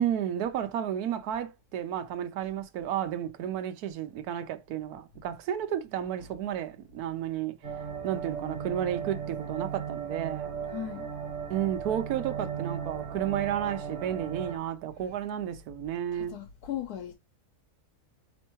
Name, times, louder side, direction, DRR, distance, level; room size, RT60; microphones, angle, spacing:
voice 1, 0.0-7.5 8.0-10.5 11.5-16.4, right 10 dB, 85° right, 1.2 m, -32 dB
sound 1, 7.6-14.6, right 7 dB, 55° right, 1.7 m, -36 dB
voice 2, 10.7-11.1 16.1-17.1, left 10 dB, 85° left, 1.2 m, -37 dB
4.4 x 3.3 x 3.0 m
omnidirectional pair, 1.6 m